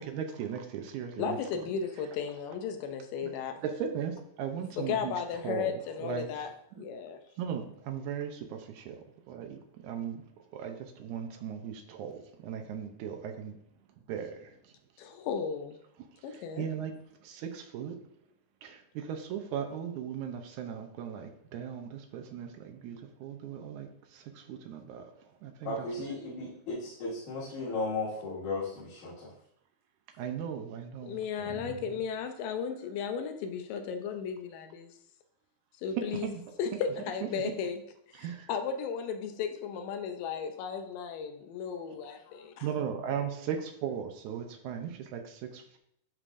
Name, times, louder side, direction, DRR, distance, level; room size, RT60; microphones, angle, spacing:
voice 1, 0.1-1.4 3.2-3.3 3.6-5.1 5.4-5.7 6.0-6.3 6.7-6.8 7.4-9.0 9.3-10.2 10.5-13.5 14.1-14.5 16.3-16.9 17.2-17.9 18.6-25.1 25.4-25.9 30.2-31.2 31.5-31.8 37.3-37.4 38.2-38.5 42.6-45.8, right 8 dB, 75° right, 5 dB, 2.0 m, -37 dB
voice 2, 1.2-3.6 4.8-7.2 15.0-15.8 16.2-16.7 31.0-34.9 35.8-37.8 38.1-42.7, left 6 dB, 85° left, 6 dB, 2.4 m, -35 dB
voice 3, 25.6-29.1 31.4-31.5, left 3 dB, 70° left, -10 dB, 3.5 m, -35 dB
11.0 x 4.9 x 2.6 m, 0.74 s
omnidirectional pair, 3.8 m